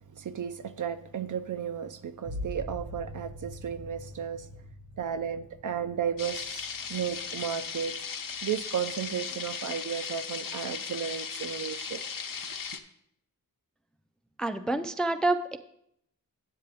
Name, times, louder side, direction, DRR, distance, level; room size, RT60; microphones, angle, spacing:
voice 1, 0.1-4.5 5.0-8.0 8.4-12.0, right 8 dB, 55° right, 0.5 m, -34 dB
sound 1, 2.2-7.7 8.2-8.8, left 1 dB, 80° right, 1.3 m, -43 dB
sound 2, 6.2-12.8, left 6 dB, 65° left, 0.7 m, -37 dB
voice 2, 14.4-15.6, right 2 dB, ahead, 0.4 m, -27 dB
9.1 x 8.3 x 3.4 m
wide cardioid pair, 105°, 37 cm